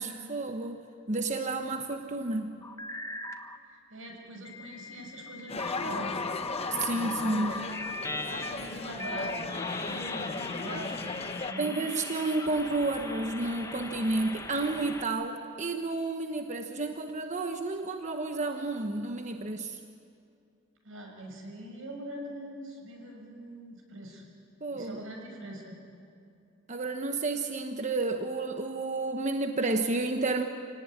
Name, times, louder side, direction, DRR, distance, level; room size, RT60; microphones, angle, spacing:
voice 1, 0.0-2.6 6.7-7.6 11.6-19.8 24.6-25.0 26.7-30.4, right 2 dB, 40° right, 5 dB, 1.1 m, -31 dB
sound 1, 2.6-3.6 4.4-15.0, left 3 dB, 15° left, 1.2 m, -39 dB
voice 2, 3.9-6.2 6.9-7.6 8.2-12.0 20.8-24.2 24.7-25.8, right 1 dB, 85° right, 2 dB, 6.2 m, -42 dB
sound 2, 5.5-11.5, left 4 dB, 30° left, 0.8 m, -37 dB
28.0 x 18.0 x 9.9 m, 2.5 s
head